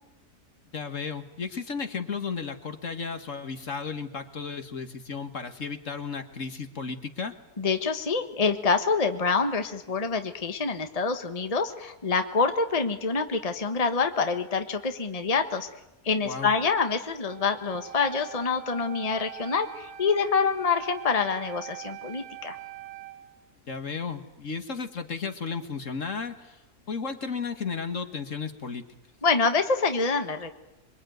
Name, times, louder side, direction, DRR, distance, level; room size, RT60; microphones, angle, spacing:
voice 1, 0.7-7.4 16.2-16.5 23.7-26.6 26.9-28.8, left 5 dB, 55° left, 8 dB, 2.1 m, -34 dB
voice 2, 7.6-15.7 16.0-22.6 29.2-30.5, left 4 dB, 25° left, 7 dB, 1.4 m, -26 dB
Wind instrument woodwind instrument, 17.2-23.2, right 14 dB, 65° right, 6.9 m, -43 dB
27.0 x 23.5 x 9.4 m, 0.92 s
omnidirectional pair, 1.6 m